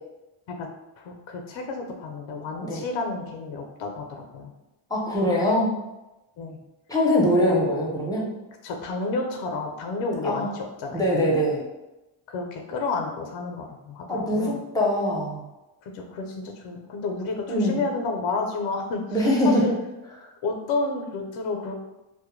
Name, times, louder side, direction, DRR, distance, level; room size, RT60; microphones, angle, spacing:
voice 1, 1.0-4.5 6.4-6.6 7.4-7.6 8.6-11.1 12.3-14.6 15.8-19.0 19.4-19.7 20.4-21.8, left 3 dB, 65° left, 3 dB, 0.5 m, -30 dB
voice 2, 4.9-5.8 6.9-8.3 10.0-10.5 10.9-11.7 14.1-15.5 17.5-17.8 19.1-19.7, equal, 10° left, -4 dB, 0.5 m, -23 dB
2.1 x 2.1 x 3.0 m, 1.0 s
cardioid pair, 120°, 48 cm